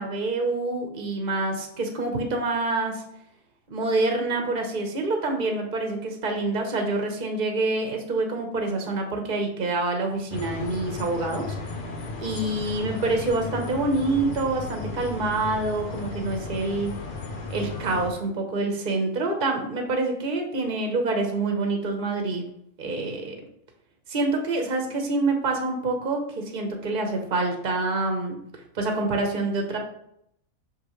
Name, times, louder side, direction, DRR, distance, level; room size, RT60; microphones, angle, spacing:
voice 1, 0.0-3.0 3.7-11.5 12.2-16.9 17.5-22.5 22.8-23.4 24.1-28.4 28.7-29.8, right 2 dB, 40° right, 3 dB, 1.2 m, -26 dB
sound 1, 10.3-18.1, left 3 dB, 45° left, 0.9 m, -35 dB
6.5 x 5.3 x 3.2 m, 0.73 s
omnidirectional pair, 1.4 m